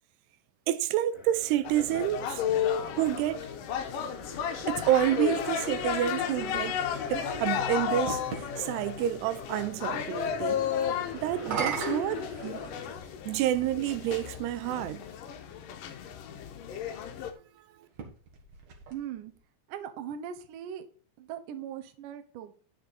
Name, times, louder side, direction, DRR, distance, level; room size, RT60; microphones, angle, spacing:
voice 1, 0.7-2.4 2.9-3.4 4.7-6.8 7.1-10.6 11.1-12.6 13.3-15.0, right 12 dB, 90° right, 2.7 m, -29 dB
sound 1, 1.1-13.0, left 1 dB, 25° left, 3.2 m, -45 dB
sound 2, 1.6-17.3, left 8 dB, 70° left, 2.3 m, -33 dB
sound 3, 7.0-8.5 11.3-13.1 14.0-14.1 17.8-19.4, right 6 dB, 55° right, 2.4 m, -37 dB
voice 2, 18.9-19.3 19.7-20.9 21.2-22.5, right 9 dB, 70° right, 2.1 m, -39 dB
10.0 x 6.8 x 4.1 m
omnidirectional pair, 4.7 m